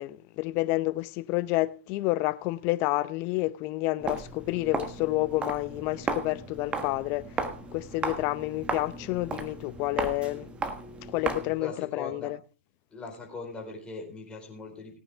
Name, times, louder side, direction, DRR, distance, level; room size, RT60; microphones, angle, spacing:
voice 1, 0.0-7.2 7.7-10.5 11.1-12.4, left 19 dB, 35° left, 0.7 m, -29 dB
Walk footsteps, 4.0-11.6, right 4 dB, 15° right, 1.3 m, -35 dB
voice 2, 11.6-12.3 12.9-15.0, left 4 dB, 15° left, 4.4 m, -40 dB
17.5 x 9.3 x 3.5 m
hypercardioid pair, 125°, 7 cm